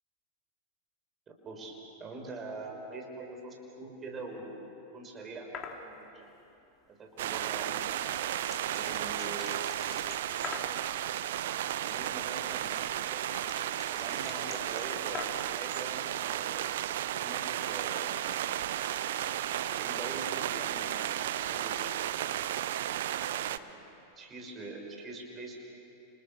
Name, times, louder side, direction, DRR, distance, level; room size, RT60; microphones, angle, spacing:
voice 1, 1.3-5.5 5.8-6.4 6.9-7.9 8.7-9.8 11.8-13.3 13.5-15.3 15.5-18.3 19.5-21.0 21.4-22.3 23.2-23.8 24.2-25.7, right 3 dB, 25° right, 2 dB, 5.5 m, -44 dB
sound 1, 5.5-5.8 7.7-10.8 12.4-15.6, left 6 dB, 25° left, 2.5 m, -44 dB
sound 2, 7.2-23.6, right 11 dB, 55° right, 0.7 m, -33 dB
30.0 x 27.5 x 7.1 m, 2.9 s
figure-of-eight pair, 90°, 0 cm